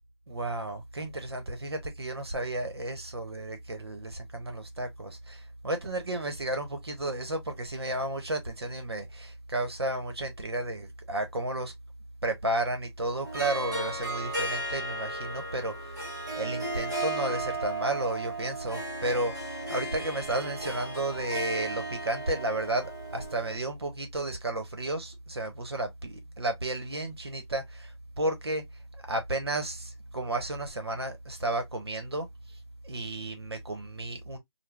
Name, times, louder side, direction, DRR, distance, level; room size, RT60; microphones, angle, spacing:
voice 1, 0.3-11.7 12.2-16.0 16.3-28.8 29.1-32.6 32.8-34.4, right 1 dB, 65° right, 1.0 m, -33 dB
Harp, 13.2-23.6, right 2 dB, 40° right, 1.4 m, -35 dB
3.5 x 2.2 x 2.2 m
figure-of-eight pair, 180°, 14 cm